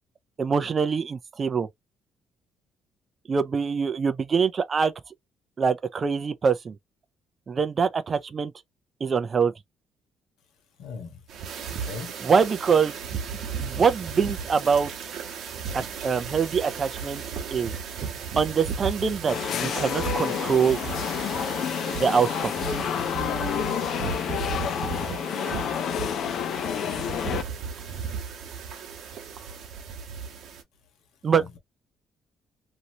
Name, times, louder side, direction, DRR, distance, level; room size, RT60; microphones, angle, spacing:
voice 1, 0.4-1.7 3.3-4.9 5.6-6.8 7.5-8.5 9.0-9.5 12.2-13.0 13.6-14.9 15.7-17.2 17.5-17.7 18.4-20.8 21.9-22.5 31.2-31.4, right 6 dB, 35° right, 0.4 m, -24 dB
voice 2, 10.8-11.2 11.7-12.1 24.6-25.0 31.3-31.6, left 5 dB, 80° left, 1.2 m, -38 dB
sound 1, 11.3-30.6, right 6 dB, 65° right, 1.0 m, -35 dB
sound 2, 19.3-27.4, left 8 dB, 60° left, 0.4 m, -29 dB
3.0 x 2.6 x 2.8 m
cardioid pair, 135°, 0 cm